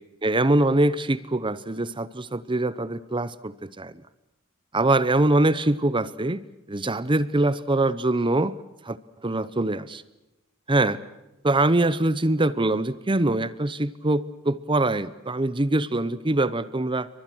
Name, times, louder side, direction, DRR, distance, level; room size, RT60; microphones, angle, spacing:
voice 1, 0.2-3.9 4.7-6.4 6.7-8.6 8.8-9.0 9.2-10.0 10.7-11.0 11.4-17.1, right 2 dB, 25° right, 17 dB, 0.8 m, -23 dB
29.5 x 24.0 x 6.3 m, 0.95 s
head